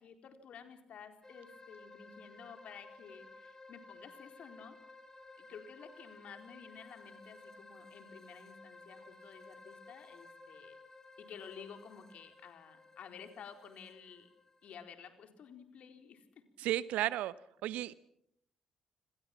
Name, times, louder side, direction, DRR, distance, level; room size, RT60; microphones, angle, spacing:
voice 1, 0.0-4.8 5.4-10.8 11.2-14.3 14.6-16.4, left 7 dB, 60° left, 6 dB, 4.2 m, -52 dB
sound 1, 1.2-14.8, left 3 dB, 20° left, 7.4 m, -56 dB
voice 2, 16.6-17.3 17.6-17.9, right 14 dB, 70° right, 18 dB, 1.0 m, -33 dB
28.0 x 25.5 x 6.0 m, 0.70 s
hypercardioid pair, 45°, 2 cm